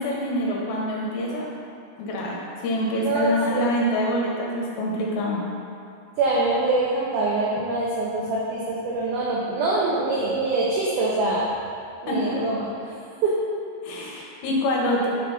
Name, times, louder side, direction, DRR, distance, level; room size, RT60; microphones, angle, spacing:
voice 1, 0.0-1.5 2.0-2.4 2.6-5.4 12.1-12.4 13.8-15.1, left 1 dB, 75° left, -3 dB, 2.9 m, -25 dB
voice 2, 3.0-3.7 6.2-11.5 12.0-12.9 13.2-13.3, right 2 dB, 85° right, -5 dB, 2.1 m, -24 dB
7.5 x 3.8 x 5.4 m, 2.5 s
omnidirectional pair, 5.3 m